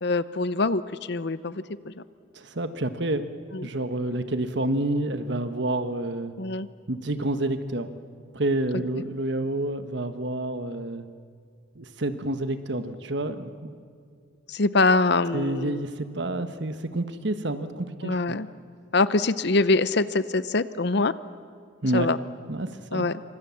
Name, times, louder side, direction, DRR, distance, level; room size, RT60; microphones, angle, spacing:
voice 1, 0.0-2.0 3.5-3.7 6.4-6.7 14.5-15.8 18.0-18.5 18.9-21.1 21.9-22.2 22.9-23.1, left 3 dB, 55° left, 15 dB, 0.7 m, -24 dB
voice 2, 2.3-3.3 3.6-6.3 6.9-7.9 8.3-11.1 11.7-13.7 15.3-18.4 21.8-22.1 22.5-23.1, right 1 dB, 60° right, 9 dB, 1.3 m, -29 dB
27.0 x 25.5 x 7.1 m, 2.2 s
head